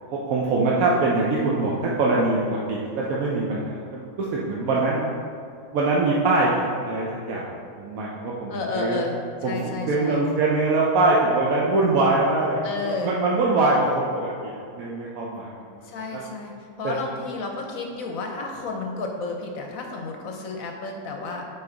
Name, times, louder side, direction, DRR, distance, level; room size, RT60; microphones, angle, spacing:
voice 1, 0.1-5.0 5.7-6.5 6.9-7.5 7.8-9.0 9.4-9.6 9.9-15.8 16.1-16.2 16.8-16.9, right 2 dB, 60° right, -4 dB, 1.0 m, -23 dB
voice 2, 8.5-10.2 12.6-13.2 15.8-21.5, left 3 dB, 60° left, 2 dB, 1.0 m, -32 dB
8.3 x 4.1 x 3.9 m, 2.4 s
omnidirectional pair, 1.9 m